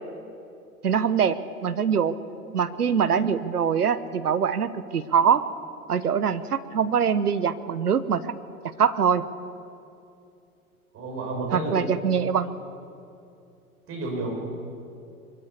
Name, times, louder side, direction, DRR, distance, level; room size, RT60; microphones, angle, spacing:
voice 1, 0.8-2.1 2.5-5.4 5.9-8.2 8.6-9.2 11.5-12.5, right 7 dB, 85° right, 13 dB, 1.1 m, -23 dB
voice 2, 10.9-11.9 13.9-14.3, right 2 dB, 30° right, 0 dB, 6.9 m, -30 dB
23.0 x 14.0 x 8.4 m, 2.6 s
figure-of-eight pair, 100°, 45 cm